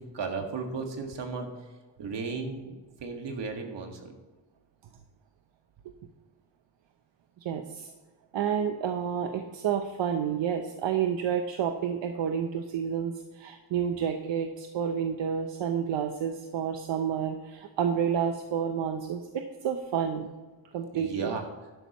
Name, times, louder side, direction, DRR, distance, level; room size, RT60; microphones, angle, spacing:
voice 1, 0.0-1.5 2.0-4.1 20.9-21.4, right 4 dB, 75° right, 3 dB, 1.9 m, -35 dB
voice 2, 7.4-7.9 8.3-20.3 20.7-21.3, right 8 dB, 90° right, 6 dB, 0.9 m, -30 dB
12.0 x 11.5 x 3.0 m, 1.3 s
wide cardioid pair, 145°, 43 cm